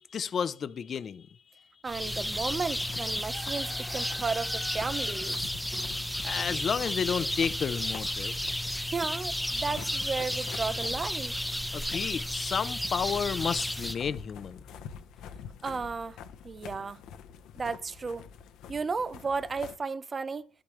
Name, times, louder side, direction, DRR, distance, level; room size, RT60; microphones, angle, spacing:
voice 1, 0.1-1.3 6.2-8.3 11.7-14.6, left 7 dB, 55° left, 0.6 m, -31 dB
voice 2, 1.8-5.4 8.9-11.3 15.6-16.2 16.4-17.0 17.6-18.3 18.7-20.5, right 4 dB, 35° right, 0.7 m, -34 dB
sound 1, 1.9-13.9, left 1 dB, 5° left, 0.9 m, -33 dB
sound 2, 2.2-19.8, left 7 dB, 80° left, 0.9 m, -48 dB
11.5 x 8.7 x 3.2 m
supercardioid pair, 70°, 0 cm